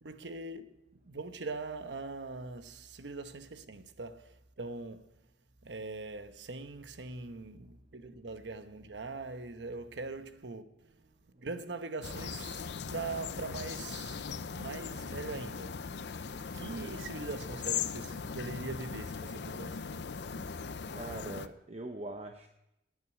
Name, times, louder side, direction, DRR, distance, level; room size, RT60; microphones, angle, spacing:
voice 1, 0.0-5.3 5.6-20.5, right 3 dB, 90° right, 1.0 m, -42 dB
sound 1, 12.0-21.5, left 6 dB, 70° left, 0.6 m, -39 dB
voice 2, 20.9-22.5, right 2 dB, 35° right, 0.8 m, -42 dB
11.0 x 9.4 x 9.2 m
head